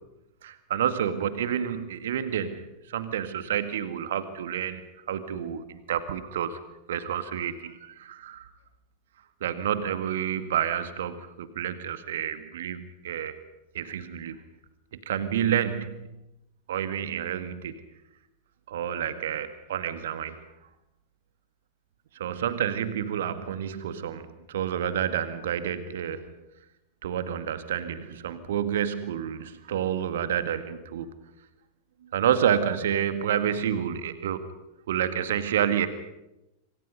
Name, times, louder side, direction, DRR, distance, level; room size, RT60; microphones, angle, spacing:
voice 1, 0.4-4.8 5.1-6.6 6.9-8.5 9.4-13.4 13.7-14.4 15.1-16.2 16.7-17.8 18.7-20.4 22.1-26.3 27.0-31.2 32.1-34.5 34.9-35.9, right 9 dB, 60° right, 11 dB, 1.8 m, -29 dB
26.5 x 26.0 x 5.4 m, 0.93 s
figure-of-eight pair, 90°, 0 cm